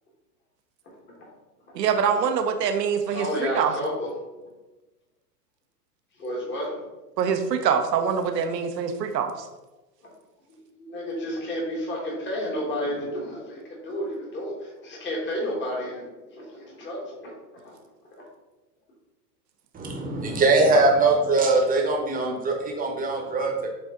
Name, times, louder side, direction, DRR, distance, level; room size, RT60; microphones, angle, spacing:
voice 1, 1.7-3.7 7.2-9.5, right 7 dB, 80° right, 7 dB, 1.0 m, -24 dB
voice 2, 3.1-4.1 6.2-6.8 10.8-17.7 20.8-20.9, equal, 25° left, -3 dB, 1.8 m, -31 dB
voice 3, 19.7-23.7, right 3 dB, 15° right, 1 dB, 1.2 m, -22 dB
8.1 x 3.3 x 3.8 m, 1.1 s
hypercardioid pair, 125°, 48 cm